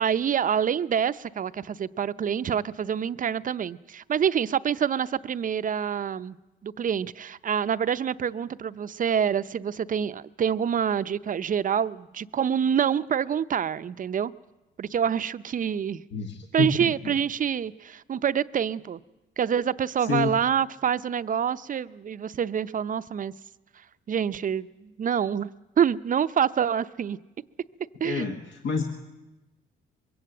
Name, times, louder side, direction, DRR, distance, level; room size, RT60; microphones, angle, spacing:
voice 1, 0.0-6.4 6.6-14.3 14.8-16.0 16.5-19.0 19.4-23.3 24.1-27.2 28.0-28.4, right 8 dB, 40° right, 13 dB, 0.6 m, -26 dB
voice 2, 16.1-16.7 20.1-20.3 28.0-28.8, left 5 dB, 65° left, 4 dB, 1.6 m, -28 dB
22.0 x 16.5 x 7.8 m, 1.1 s
cardioid pair, 90°, 20 cm